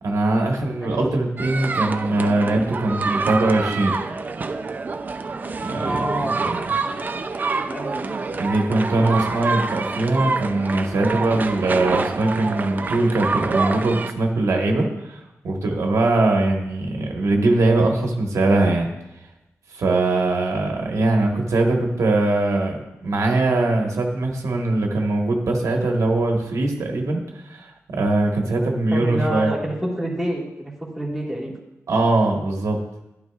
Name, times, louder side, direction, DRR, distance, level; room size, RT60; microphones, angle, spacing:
voice 1, 0.0-3.9 5.6-6.0 6.4-6.7 8.4-18.9 19.7-29.5 31.9-32.8, right 2 dB, 85° right, 1 dB, 1.4 m, -21 dB
voice 2, 0.8-1.2 5.7-8.1 28.9-31.5, right 1 dB, ahead, -4 dB, 1.6 m, -29 dB
sound 1, 1.4-14.1, right 4 dB, 35° right, 0.4 m, -27 dB
11.5 x 10.5 x 2.4 m, 0.94 s
wide cardioid pair, 175°, 5 cm